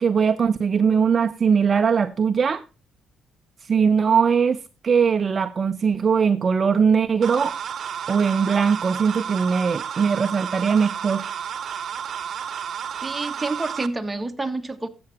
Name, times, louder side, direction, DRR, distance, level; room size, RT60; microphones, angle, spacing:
voice 1, 0.0-2.6 3.7-7.5 8.1-11.3, right 6 dB, 40° right, 0.6 m, -20 dB
sound 1, 7.2-13.9, right 8 dB, 60° right, 1.0 m, -32 dB
voice 2, 13.0-14.9, right 2 dB, 15° right, 1.4 m, -28 dB
13.5 x 7.8 x 4.2 m
cardioid pair, 90°, 0 cm